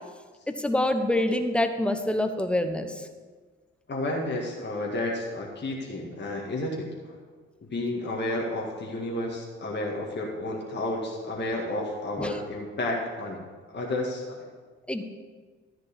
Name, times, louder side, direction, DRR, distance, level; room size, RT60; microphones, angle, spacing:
voice 1, 0.5-3.1 12.2-12.3 14.9-15.0, left 1 dB, 5° left, 7 dB, 1.1 m, -26 dB
voice 2, 3.9-7.2 7.7-13.4 13.7-14.5, left 1 dB, 30° left, -2 dB, 1.9 m, -31 dB
13.5 x 4.6 x 8.6 m, 1.5 s
figure-of-eight pair, 40°, 34 cm